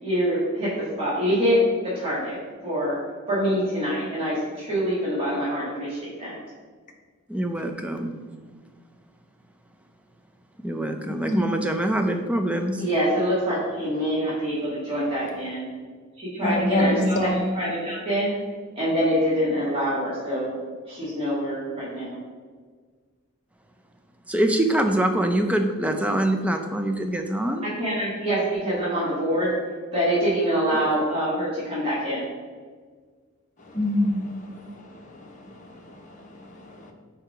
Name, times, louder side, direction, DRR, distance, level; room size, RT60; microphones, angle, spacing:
voice 1, 0.0-1.6 1.9-2.4 2.6-3.0 3.3-6.4 12.8-15.7 16.2-18.3 18.8-20.6 20.9-22.2 27.6-29.5 29.9-32.3, equal, 25° right, -9 dB, 1.9 m, -25 dB
voice 2, 7.3-8.1 10.6-12.8 24.3-27.6, right 1 dB, 5° right, 4 dB, 0.4 m, -24 dB
voice 3, 11.1-11.5 16.4-17.4 33.7-36.9, left 1 dB, 35° left, 1 dB, 0.8 m, -27 dB
4.7 x 4.5 x 4.9 m, 1.6 s
head